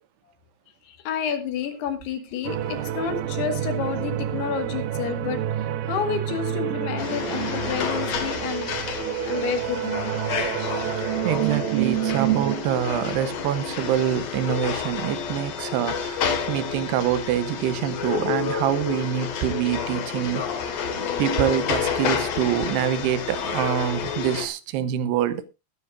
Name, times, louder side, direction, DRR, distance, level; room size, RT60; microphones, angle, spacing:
voice 1, 0.9-5.4 5.9-8.7 9.3-10.1, left 8 dB, 80° left, 3.7 m, -30 dB
sound 1, 2.4-12.6, right 11 dB, 70° right, 2.1 m, -28 dB
voice 2, 6.7-7.4 11.2-20.8 21.2-25.5, right 10 dB, 90° right, 2.9 m, -26 dB
sound 2, 7.0-24.5, left 7 dB, 55° left, 2.2 m, -29 dB
21.0 x 9.6 x 2.5 m
omnidirectional pair, 4.7 m